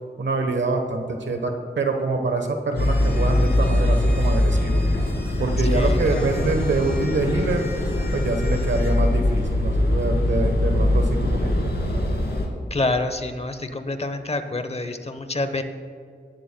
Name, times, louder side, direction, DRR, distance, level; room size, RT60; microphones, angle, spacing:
voice 1, 0.2-4.8 5.4-7.7 8.1-12.0, right 3 dB, 90° right, 5 dB, 1.1 m, -25 dB
sound 1, 2.8-12.5, left 1 dB, 65° left, 2.4 m, -22 dB
voice 2, 5.6-6.5 12.7-15.6, left 2 dB, 35° left, 9 dB, 0.8 m, -27 dB
18.0 x 11.5 x 2.2 m, 2.3 s
wide cardioid pair, 85°, 19 cm